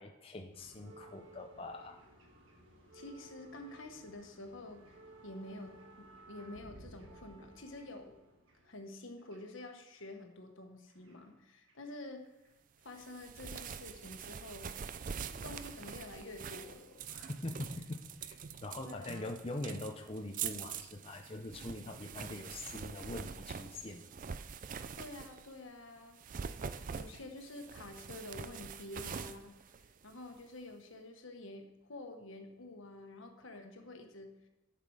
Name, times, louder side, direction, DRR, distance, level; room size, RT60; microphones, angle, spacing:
voice 1, 0.0-2.0 17.4-18.0 18.3-24.1, left 2 dB, 30° left, 2 dB, 0.6 m, -43 dB
sound 1, 0.5-10.0 10.9-12.0 12.2-12.5 13.4-13.5, right 2 dB, 75° right, 1.4 m, -57 dB
voice 2, 2.9-5.0 5.2-8.2 8.6-12.3 12.8-14.7 15.3-17.4 18.8-19.3 25.0-29.5 30.0-34.5, left 2 dB, 75° left, 5 dB, 1.3 m, -49 dB
sound 2, 12.9-25.6 26.1-30.4, right 6 dB, 40° right, 0.4 m, -45 dB
10.5 x 5.9 x 4.8 m, 1.0 s
head